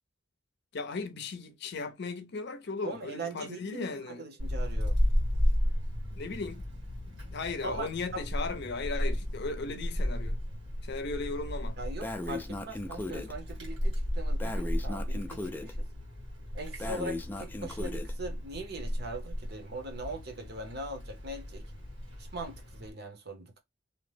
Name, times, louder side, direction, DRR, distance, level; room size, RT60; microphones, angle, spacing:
voice 1, 0.7-4.3 6.2-6.7 7.1-10.4 10.8-11.8, left 3 dB, 60° left, 0.6 m, -37 dB
voice 2, 2.8-5.0 7.6-8.2 11.8-15.9 16.5-21.6 22.2-23.6, right 2 dB, 60° right, 0.8 m, -41 dB
Wind, 4.4-22.9, equal, 90° right, 1.5 m, -34 dB
Breathing, 12.0-13.3 14.4-15.7 16.8-18.1, left 1 dB, 10° left, 0.3 m, -37 dB
2.8 x 2.1 x 3.2 m
head